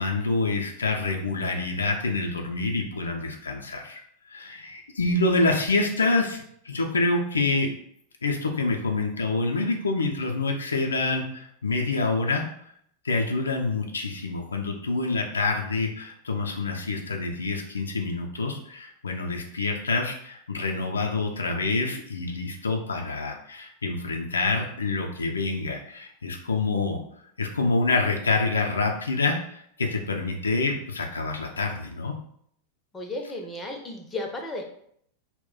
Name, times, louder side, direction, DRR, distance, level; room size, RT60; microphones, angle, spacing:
voice 1, 0.0-4.0 4.3-7.7 8.2-12.4 13.0-27.0 27.4-32.1, left 3 dB, 75° left, 1 dB, 0.4 m, -27 dB
voice 2, 32.9-34.6, left 2 dB, 10° left, 2 dB, 0.5 m, -34 dB
2.2 x 2.1 x 3.7 m, 0.68 s
figure-of-eight pair, 90°, 0 cm